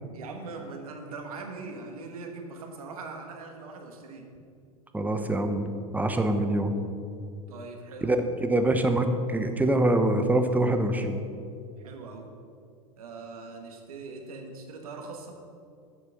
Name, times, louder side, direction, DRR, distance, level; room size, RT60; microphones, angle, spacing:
voice 1, 0.1-4.3 7.5-8.1 11.8-12.3 13.0-15.4, right 3 dB, 80° right, 4 dB, 1.4 m, -41 dB
voice 2, 4.9-6.7 8.0-11.2, right 1 dB, 10° right, 6 dB, 0.8 m, -25 dB
7.7 x 6.4 x 6.4 m, 2.4 s
hypercardioid pair, 95°, 18 cm